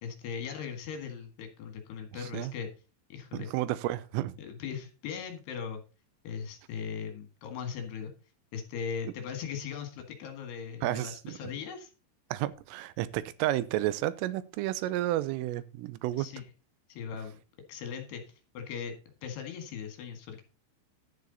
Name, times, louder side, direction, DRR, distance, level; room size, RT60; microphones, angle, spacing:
voice 1, 0.0-2.7 3.1-3.5 4.4-5.8 6.2-8.1 8.5-11.9 16.2-16.4 16.9-17.4 17.7-18.2 18.5-20.4, left 7 dB, 65° left, 3.6 m, -39 dB
voice 2, 3.3-4.4 10.8-11.3 12.3-16.3, right 15 dB, 90° right, 3.4 m, -31 dB
11.5 x 9.7 x 4.0 m
omnidirectional pair, 5.7 m